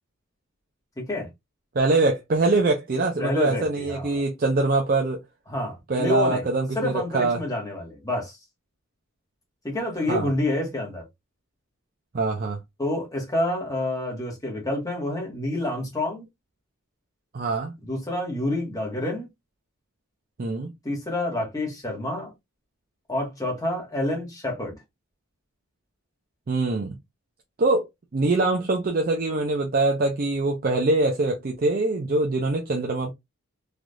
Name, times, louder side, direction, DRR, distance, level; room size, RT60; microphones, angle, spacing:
voice 1, 1.0-1.3 3.2-4.2 5.5-6.5 6.7-8.4 9.6-11.0 12.8-16.2 17.9-19.3 20.8-22.3 23.1-24.8, left 1 dB, 15° left, 1.0 m, -28 dB
voice 2, 1.7-5.2 5.9-7.4 10.1-10.3 12.1-12.6 17.3-17.7 20.4-20.7 26.5-27.0 27.6-27.9 28.1-33.1, right 2 dB, 40° right, 0.4 m, -23 dB
3.3 x 2.3 x 2.5 m
head